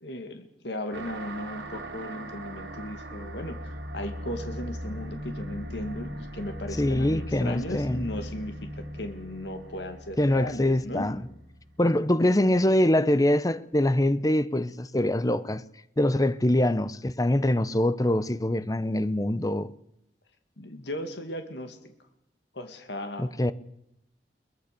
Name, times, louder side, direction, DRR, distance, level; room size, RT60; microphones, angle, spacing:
voice 1, 0.0-11.1 20.6-21.8 22.5-23.3, left 1 dB, 80° left, 2.3 m, -36 dB
sound 1, 0.9-11.9, equal, 80° right, 3.5 m, -39 dB
voice 2, 6.8-8.0 10.2-11.2 11.8-15.6 16.0-19.7 23.2-23.5, left 1 dB, 20° left, 0.7 m, -24 dB
22.5 x 20.0 x 6.9 m
head